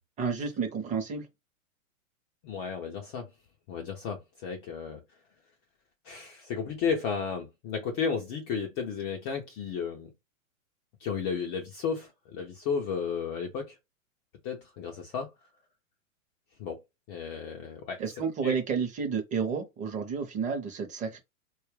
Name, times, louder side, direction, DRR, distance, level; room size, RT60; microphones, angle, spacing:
voice 1, 0.2-1.3 18.0-21.2, right 6 dB, 20° right, 0.7 m, -31 dB
voice 2, 2.4-3.3 3.7-5.0 6.0-10.1 11.0-13.8 14.4-15.3 16.6-16.8 17.1-18.1 18.4-18.6, left 6 dB, 20° left, 0.4 m, -33 dB
4.3 x 2.3 x 3.0 m
hypercardioid pair, 115°, 41 cm